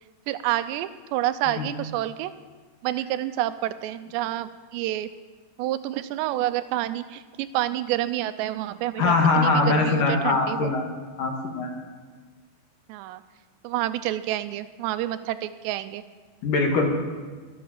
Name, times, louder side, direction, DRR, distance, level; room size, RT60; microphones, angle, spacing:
voice 1, 0.3-2.3 2.8-5.1 5.6-10.7 12.9-13.2 13.6-16.0, right 14 dB, 85° right, 12 dB, 2.8 m, -28 dB
voice 2, 9.0-10.9 11.2-11.7 16.4-16.9, left 3 dB, 60° left, 2 dB, 2.8 m, -22 dB
22.5 x 7.7 x 7.3 m, 1.4 s
omnidirectional pair, 5.0 m